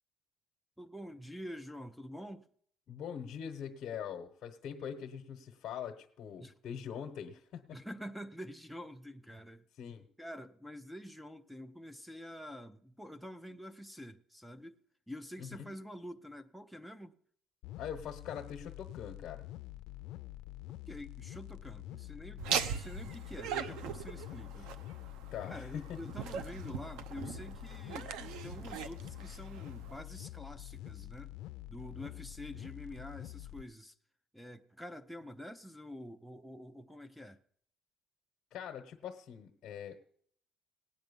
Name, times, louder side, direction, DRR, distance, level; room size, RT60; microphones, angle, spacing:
voice 1, 0.8-2.5 6.4-6.5 7.7-9.7 10.2-14.8 15.1-17.1 20.9-24.7 25.4-31.3 31.7-34.0 34.3-37.4, equal, ahead, 0.5 m, -47 dB
voice 2, 2.9-7.8 9.8-10.0 15.4-15.7 17.8-19.5 24.6-24.7 25.3-26.0 38.5-40.0, left 8 dB, 50° left, 1.1 m, -43 dB
sound 1, 17.6-33.6, left 15 dB, 75° left, 0.4 m, -47 dB
Laughter, 22.4-30.0, right 7 dB, 85° right, 0.8 m, -40 dB
18.0 x 9.1 x 5.3 m
cardioid pair, 160°, 0 cm